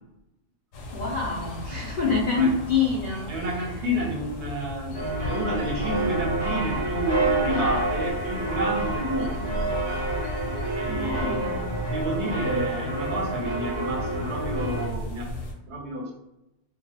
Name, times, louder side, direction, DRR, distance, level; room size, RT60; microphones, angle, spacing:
sound 1, 0.7-15.5, left 1 dB, 85° left, 1.0 m, -35 dB
voice 1, 0.9-3.3 10.9-11.7, left 4 dB, 60° left, -4 dB, 0.5 m, -26 dB
voice 2, 3.3-9.7 10.7-11.4 11.9-15.3 15.7-16.1, right 1 dB, 65° right, 0 dB, 0.8 m, -30 dB
sound 2, 4.9-14.9, right 2 dB, 30° right, 0.5 m, -28 dB
2.3 x 2.0 x 2.7 m, 0.91 s
omnidirectional pair, 1.3 m